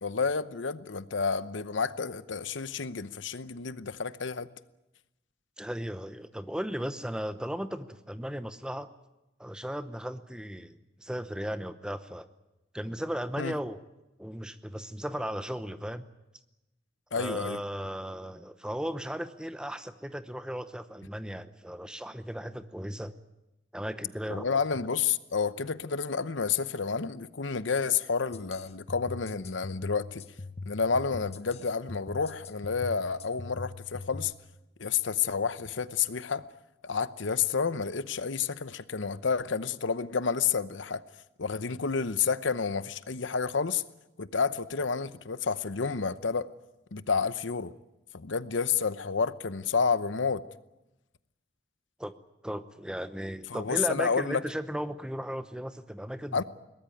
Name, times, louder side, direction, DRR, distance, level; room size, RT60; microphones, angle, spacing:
voice 1, 0.0-4.5 13.4-13.5 17.1-17.6 24.3-30.2 30.7-34.3 34.8-36.4 36.8-41.0 41.4-43.8 44.2-46.5 46.9-47.7 48.1-50.4 53.5-54.4 56.3-56.4, left 5 dB, 80° left, 0.9 m, -30 dB
voice 2, 5.6-8.9 9.4-12.3 12.7-13.8 14.2-16.1 17.1-23.1 23.7-24.6 52.0-52.1 52.4-56.4, equal, 5° right, 0.8 m, -36 dB
sound 1, 28.3-34.3, left 3 dB, 35° left, 0.8 m, -42 dB
22.0 x 19.0 x 9.1 m
head